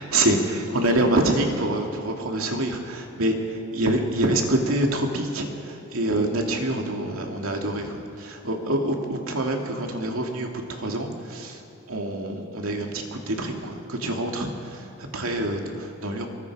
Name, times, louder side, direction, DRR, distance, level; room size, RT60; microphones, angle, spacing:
voice 1, 0.0-11.6 11.9-16.3, right 1 dB, 80° right, 2 dB, 2.5 m, -26 dB
24.5 x 23.0 x 4.9 m, 2.5 s
head